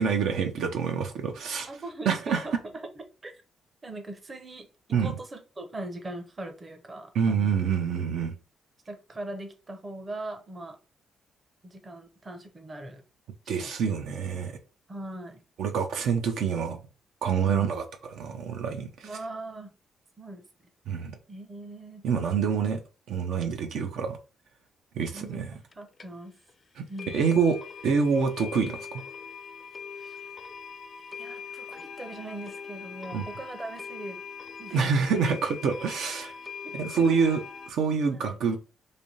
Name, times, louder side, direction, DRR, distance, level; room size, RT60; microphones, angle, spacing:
voice 1, 0.0-1.7 2.1-2.4 4.9-5.1 7.1-8.3 13.5-14.5 15.6-16.8 17.2-17.8 18.1-19.1 20.9-21.1 22.0-22.8 23.1-24.2 25.0-25.5 26.8-26.9 27.1-27.6 27.8-29.0 33.1-33.2 34.7-36.3 36.7-38.6, right 6 dB, 80° right, 0.7 m, -26 dB
voice 2, 1.7-2.5 2.9-3.3 3.8-7.5 8.9-10.8 11.6-13.0 13.5-13.7 14.9-15.4 17.4-17.7 19.0-19.7 20.2-20.5 21.3-22.0 25.1-26.3 26.9-27.3 29.9-30.3 31.2-34.2 34.6-34.9 36.6-36.7 37.2-37.4 38.1-38.4, right 2 dB, 25° right, 0.7 m, -41 dB
sound 1, 25.7-25.8 26.0-26.1 26.5-26.6 27.0-37.7, left 6 dB, 35° left, 0.4 m, -42 dB
3.4 x 2.6 x 4.0 m
cardioid pair, 125°, 0 cm